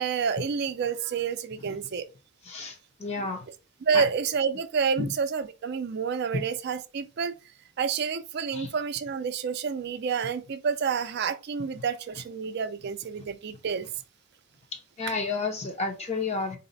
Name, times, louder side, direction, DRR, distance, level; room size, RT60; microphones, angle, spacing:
voice 1, 0.0-2.1 3.8-7.3 7.8-13.9, right 6 dB, 50° right, 0.4 m, -29 dB
voice 2, 2.5-3.4 3.9-4.0 5.0-5.1 6.3-6.4 8.5-8.7 14.7-16.6, left 3 dB, 30° left, 0.5 m, -31 dB
4.0 x 2.1 x 3.9 m
head